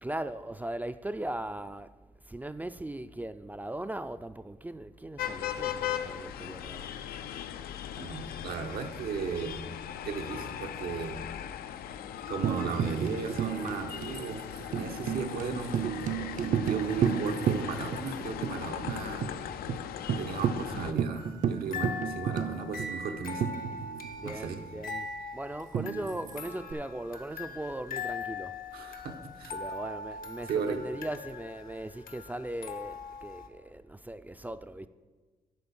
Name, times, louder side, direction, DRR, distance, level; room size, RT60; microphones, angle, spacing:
voice 1, 0.0-1.9 2.3-7.0 24.2-28.6 29.5-34.9, right 1 dB, 10° right, 0.3 m, -39 dB
sound 1, 5.2-20.9, left 10 dB, 90° left, 0.4 m, -39 dB
voice 2, 8.0-9.6 10.0-11.2 12.3-14.4 14.7-15.7 16.4-19.3 20.2-23.6 24.2-24.6 28.7-29.5 30.5-30.8, right 5 dB, 90° right, 1.0 m, -36 dB
Tambourine, 12.4-18.1 18.4-18.5 18.9-19.3 19.7-19.8 20.1-24.2 25.7-26.7, right 8 dB, 60° right, 0.5 m, -32 dB
sound 2, 21.2-33.5, left 4 dB, 70° left, 0.8 m, -41 dB
11.0 x 4.0 x 7.1 m
cardioid pair, 100°, 15 cm